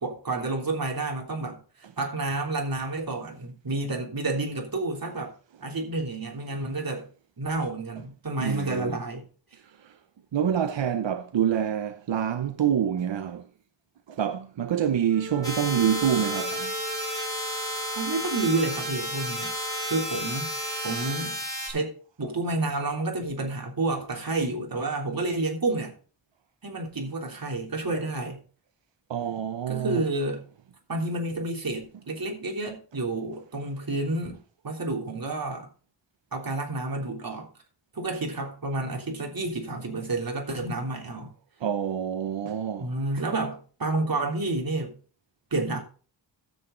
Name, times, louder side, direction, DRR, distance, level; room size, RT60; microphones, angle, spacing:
voice 1, 0.0-5.3 5.6-7.1 7.4-9.3 17.9-19.5 19.9-20.5 20.8-21.4 21.7-21.9 22.2-25.9 26.6-28.4 29.7-30.4 30.9-34.4 34.6-35.7 36.3-37.5 37.9-41.3 42.8-44.9 45.5-45.8, right 2 dB, 50° right, 3.4 m, -30 dB
voice 2, 8.4-8.9 10.3-13.4 14.1-16.7 29.1-30.0 41.6-42.9, right 9 dB, 90° right, 0.8 m, -26 dB
Wind instrument woodwind instrument, 15.1-21.4, right 1 dB, 30° right, 3.3 m, -38 dB
sound 1, 15.4-21.7, equal, 10° left, 5.4 m, -32 dB
13.0 x 8.1 x 3.9 m
wide cardioid pair, 110°, 43 cm